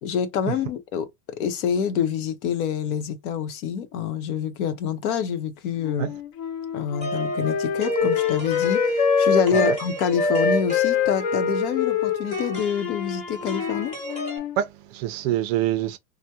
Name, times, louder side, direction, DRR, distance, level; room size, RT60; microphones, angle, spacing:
voice 1, 0.0-6.1 6.7-13.9, left 7 dB, 70° left, 0.8 m, -26 dB
Wind instrument woodwind instrument, 5.8-9.8 10.2-14.6, left 7 dB, 40° left, 0.4 m, -25 dB
sound 1, 7.0-14.4, right 1 dB, 15° left, 1.0 m, -30 dB
voice 2, 14.6-16.0, right 12 dB, 45° right, 0.4 m, -26 dB
3.4 x 2.1 x 2.7 m
supercardioid pair, 140°, 45 cm